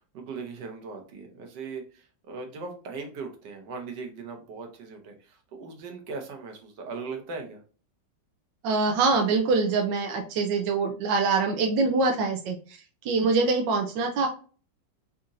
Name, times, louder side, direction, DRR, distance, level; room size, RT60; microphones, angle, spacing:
voice 1, 0.0-7.6, right 4 dB, 75° right, 4 dB, 1.6 m, -39 dB
voice 2, 8.6-12.6 13.0-14.3, right 4 dB, 90° right, 4 dB, 1.3 m, -24 dB
4.2 x 2.7 x 3.6 m, 0.38 s
omnidirectional pair, 1.9 m